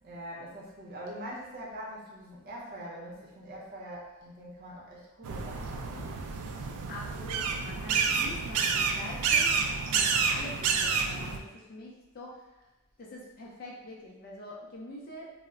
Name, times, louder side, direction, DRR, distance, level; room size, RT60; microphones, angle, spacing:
voice 1, 0.0-6.2, equal, 45° right, -5 dB, 0.6 m, -43 dB
sound 1, 5.2-11.4, right 5 dB, 80° right, 0.3 m, -29 dB
voice 2, 6.9-12.6 13.0-15.3, left 1 dB, 45° left, -3 dB, 0.4 m, -45 dB
2.1 x 2.0 x 3.5 m, 1.0 s
head